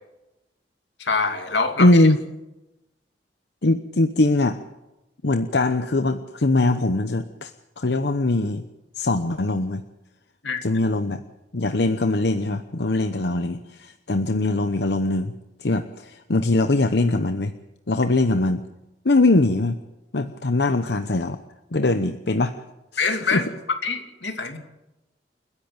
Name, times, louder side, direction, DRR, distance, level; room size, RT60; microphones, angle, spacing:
voice 1, 1.0-1.9 10.4-10.6 23.0-23.4 23.8-24.6, left 4 dB, 90° left, 5 dB, 2.8 m, -24 dB
voice 2, 1.8-2.2 3.6-4.6 5.2-7.5 7.8-8.7 9.0-9.8 10.6-11.2 11.5-15.3 15.6-17.5 17.9-18.6 19.0-19.8 20.1-21.4 21.7-22.5 22.9-23.4, left 2 dB, 65° left, 9 dB, 0.9 m, -21 dB
29.0 x 10.5 x 8.9 m, 0.98 s
head